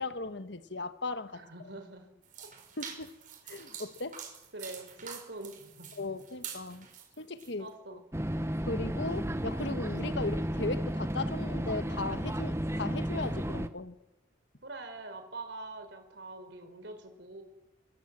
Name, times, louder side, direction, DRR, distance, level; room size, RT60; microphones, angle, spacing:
voice 1, 0.0-1.4 2.8-3.2 3.5-4.2 6.0-6.9 7.2-8.0 8.7-14.0, left 3 dB, 65° left, 1.3 m, -37 dB
voice 2, 1.3-2.1 2.4-2.5 4.5-6.1 7.6-8.0 14.6-17.4, right 2 dB, 60° right, 4.7 m, -44 dB
sound 1, 2.2-7.5, right 8 dB, 40° right, 5.4 m, -46 dB
sound 2, 8.1-13.7, equal, 15° right, 1.0 m, -33 dB
26.0 x 23.0 x 7.6 m
head